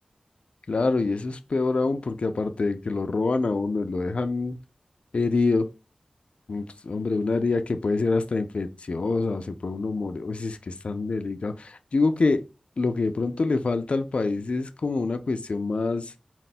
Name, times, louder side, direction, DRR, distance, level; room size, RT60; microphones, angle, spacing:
voice 1, 0.7-4.6 5.1-5.7 6.5-12.4 12.8-16.1, left 3 dB, 65° left, 0.4 m, -26 dB
4.1 x 2.2 x 4.1 m
wide cardioid pair, 65°, 2 cm